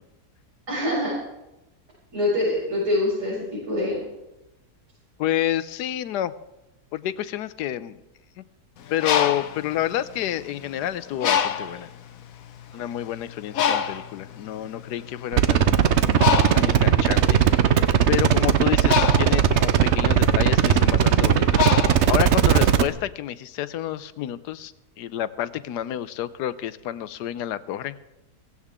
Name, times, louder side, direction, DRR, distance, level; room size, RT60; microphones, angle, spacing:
voice 1, 0.7-1.1 2.1-4.1, left 1 dB, 90° right, -10 dB, 7.3 m, -25 dB
voice 2, 5.2-6.3 6.9-8.0 8.4-8.5 8.9-11.9 12.7-15.7 16.5-17.6 18.1-21.7 22.1-24.7 25.0-27.9, left 12 dB, 90° left, 15 dB, 1.2 m, -29 dB
Bird, 8.8-10.7 11.2-11.9 12.6-12.7 13.0-22.7, left 8 dB, 65° left, 1.1 m, -26 dB
sound 1, 15.3-22.9, right 9 dB, 55° right, 0.8 m, -18 dB
17.0 x 15.5 x 3.7 m, 0.95 s
omnidirectional pair, 1.7 m